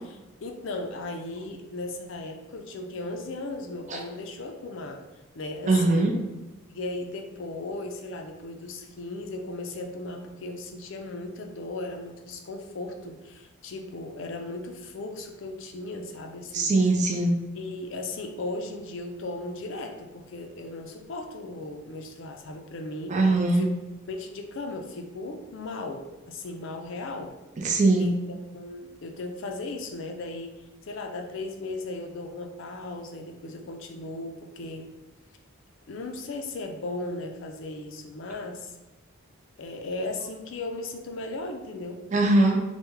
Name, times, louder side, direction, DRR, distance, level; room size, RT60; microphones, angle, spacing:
voice 1, 0.4-5.0 5.3-6.1 6.7-16.7 17.5-23.7 24.1-27.4 28.0-34.9 35.9-38.8 39.6-42.0, left 2 dB, 60° left, 4 dB, 0.4 m, -36 dB
voice 2, 5.7-6.2 16.5-17.4 23.1-23.6 27.6-28.1 42.1-42.6, right 2 dB, 35° right, 1 dB, 0.4 m, -21 dB
3.4 x 2.2 x 3.1 m, 1.1 s
head